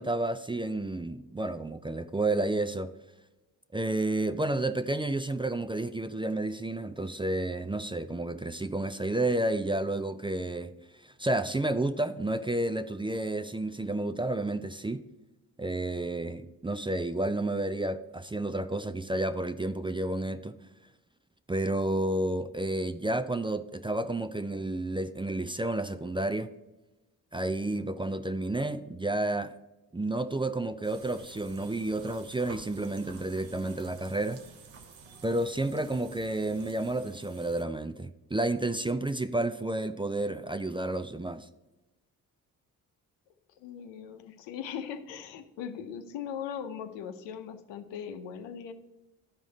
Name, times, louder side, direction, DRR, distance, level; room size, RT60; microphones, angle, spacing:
voice 1, 0.0-2.9 3.7-10.7 11.0-15.0 15.6-20.5 21.5-26.5 27.3-29.5 29.9-34.4 35.2-41.5, right 2 dB, 10° right, 0.5 m, -31 dB
sound 1, 30.8-37.6, right 5 dB, 85° right, 1.0 m, -51 dB
voice 2, 43.6-48.7, left 8 dB, 80° left, 0.9 m, -39 dB
12.0 x 4.9 x 4.0 m
hypercardioid pair, 45°, 44 cm